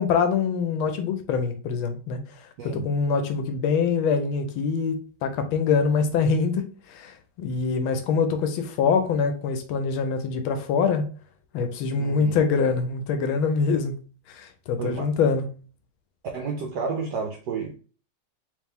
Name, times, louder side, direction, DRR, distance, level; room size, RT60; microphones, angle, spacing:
voice 1, 0.0-11.0 11.5-13.9 14.3-15.5, left 5 dB, 80° left, 1.4 m, -24 dB
voice 2, 12.0-12.4 14.8-15.1 16.3-17.7, right 5 dB, 80° right, 0.9 m, -31 dB
3.4 x 3.1 x 3.4 m
omnidirectional pair, 2.3 m